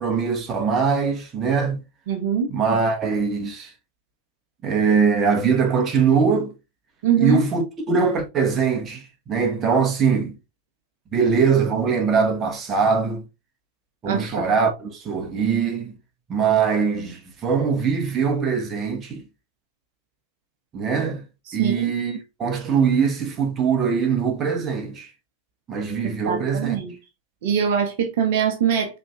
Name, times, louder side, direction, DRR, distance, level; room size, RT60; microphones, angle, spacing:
voice 1, 0.0-1.8 2.5-3.7 4.6-6.5 7.2-10.3 11.1-13.2 14.0-16.0 16.3-19.2 20.7-21.2 21.5-25.1 25.7-26.8, right 5 dB, 25° right, 1.0 m, -22 dB
voice 2, 2.1-2.5 7.0-7.4 14.1-14.5 21.5-21.8 26.2-26.9 27.4-29.0, right 8 dB, 50° right, 0.8 m, -22 dB
5.2 x 3.4 x 2.3 m
figure-of-eight pair, 90°, 0 cm